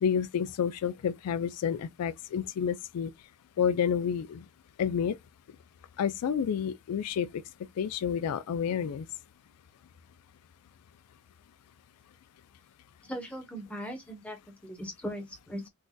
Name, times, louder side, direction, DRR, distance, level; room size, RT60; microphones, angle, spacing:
voice 1, 0.0-3.1 3.6-4.4 4.8-5.2 6.0-7.4 7.8-9.1, left 7 dB, 85° left, 0.3 m, -29 dB
voice 2, 13.1-15.7, equal, 5° left, 1.0 m, -39 dB
3.9 x 2.5 x 2.2 m
head